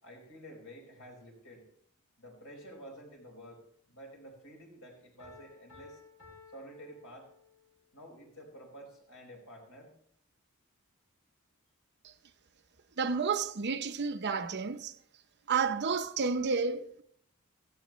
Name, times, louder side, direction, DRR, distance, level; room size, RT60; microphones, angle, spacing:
voice 1, 0.0-1.7 2.2-6.0 6.5-7.3 7.9-9.9, equal, 70° left, 5.0 m, -50 dB
Piano, 5.2-7.8, left 5 dB, 90° left, 5.5 m, -56 dB
voice 2, 13.0-14.9 15.5-17.0, right 5 dB, 55° right, 0.7 m, -31 dB
16.5 x 15.0 x 3.1 m
head